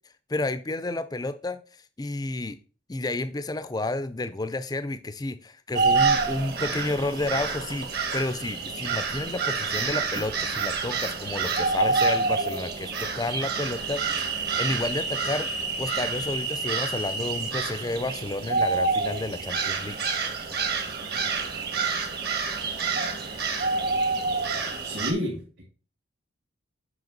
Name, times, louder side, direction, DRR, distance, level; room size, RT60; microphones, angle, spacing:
voice 1, 0.3-2.6 2.9-15.5 15.8-20.0, left 2 dB, 20° left, 12 dB, 0.4 m, -31 dB
sound 1, 5.7-25.1, right 4 dB, 50° right, 1.2 m, -28 dB
voice 2, 24.8-25.6, left 1 dB, 65° right, -1 dB, 2.2 m, -30 dB
7.8 x 5.0 x 3.9 m, 0.38 s
head